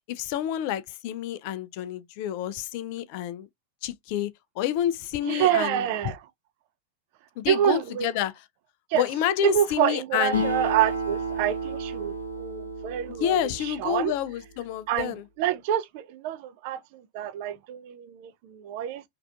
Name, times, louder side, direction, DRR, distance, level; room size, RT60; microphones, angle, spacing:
voice 1, 0.1-3.5 3.8-4.3 4.6-5.9 7.4-8.3 9.0-10.4 13.1-15.2, left 11 dB, 45° left, 0.3 m, -29 dB
voice 2, 5.2-6.2 7.5-8.1 8.9-9.0 9.4-14.1 14.9-19.0, right 10 dB, 45° right, 0.4 m, -27 dB
Acoustic guitar, 10.3-14.1, right 1 dB, 80° left, 0.8 m, -31 dB
3.3 x 2.5 x 2.2 m
figure-of-eight pair, 90°, 0 cm